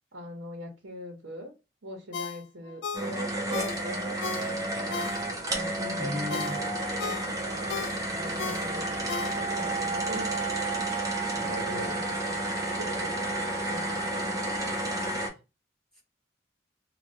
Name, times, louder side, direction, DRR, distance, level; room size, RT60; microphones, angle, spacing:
voice 1, 0.1-1.5 1.8-5.1 5.5-6.2 6.5-7.2 8.1-10.6 11.4-13.3 13.7-14.3, equal, 85° right, 0.9 m, -42 dB
Ringtone, 2.1-5.6 6.0-9.8 10.1-10.2, left 6 dB, 75° left, 0.3 m, -37 dB
sound 1, 2.9-15.3, right 2 dB, 20° right, 0.7 m, -31 dB
voice 2, 6.0-6.6 11.3-12.0 15.9-16.0, left 2 dB, 5° left, 1.3 m, -37 dB
3.2 x 2.3 x 2.7 m
head